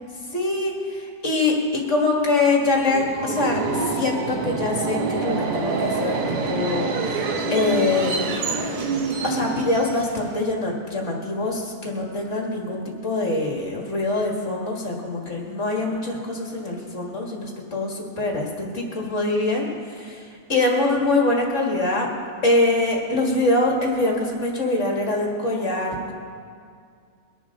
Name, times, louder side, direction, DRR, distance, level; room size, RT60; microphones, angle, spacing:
voice 1, 0.2-8.6 9.2-20.2 20.5-22.1 22.4-26.1, left 2 dB, 30° left, -1 dB, 1.6 m, -24 dB
Subway metro underground, 2.7-10.4, right 3 dB, 60° right, 1.7 m, -26 dB
23.0 x 11.0 x 3.7 m, 2.2 s
omnidirectional pair, 3.5 m